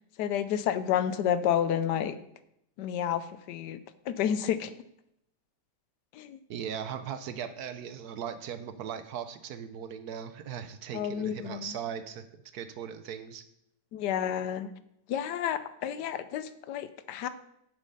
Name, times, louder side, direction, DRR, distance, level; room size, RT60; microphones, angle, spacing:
voice 1, 0.2-2.2 2.8-3.8 4.1-4.7 6.1-6.4 10.9-11.7 13.9-14.7 15.1-17.3, left 9 dB, 75° left, 13 dB, 1.2 m, -30 dB
voice 2, 6.5-12.2 12.5-13.4, right 8 dB, 70° right, 11 dB, 1.1 m, -38 dB
8.4 x 6.3 x 5.5 m, 0.78 s
omnidirectional pair, 1.8 m